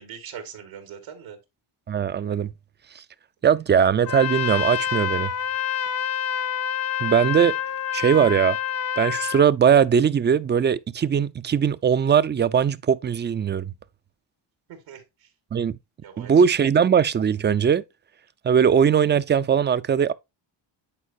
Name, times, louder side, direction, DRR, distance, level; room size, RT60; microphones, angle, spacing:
voice 1, 0.0-1.4 14.7-15.0 16.0-16.4, right 8 dB, 90° right, 2.0 m, -41 dB
voice 2, 1.9-2.5 3.4-5.3 7.0-7.5 7.9-8.6 9.0-13.7 15.5-15.8 16.2-17.8 18.4-20.1, right 7 dB, 25° right, 0.4 m, -20 dB
Trumpet, 4.0-9.5, left 9 dB, 35° left, 0.6 m, -27 dB
10.0 x 4.3 x 2.7 m
cardioid pair, 75°, 47 cm